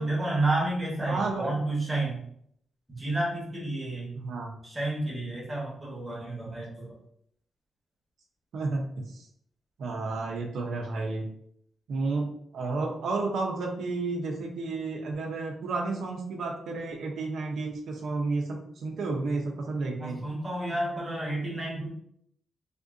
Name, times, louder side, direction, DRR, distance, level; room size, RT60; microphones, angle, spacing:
voice 1, 0.0-2.2 2.9-4.1 4.6-6.9 20.0-21.9, right 2 dB, 10° right, -5 dB, 1.0 m, -30 dB
voice 2, 1.1-1.5 4.2-4.5 8.5-8.8 9.1-9.3 9.8-11.2 11.9-20.2, right 3 dB, 70° right, 1 dB, 0.6 m, -31 dB
3.6 x 2.5 x 2.5 m, 0.69 s
wide cardioid pair, 180°, 0 cm